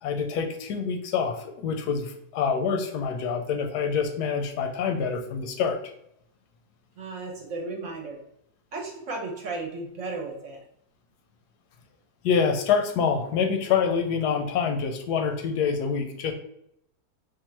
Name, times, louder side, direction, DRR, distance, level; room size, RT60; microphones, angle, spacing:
voice 1, 0.0-5.8 12.2-16.3, left 6 dB, 85° left, 5 dB, 1.2 m, -26 dB
voice 2, 7.0-8.2 8.7-10.6, right 3 dB, 60° right, 1 dB, 0.9 m, -34 dB
3.7 x 2.4 x 4.4 m, 0.76 s
omnidirectional pair, 1.7 m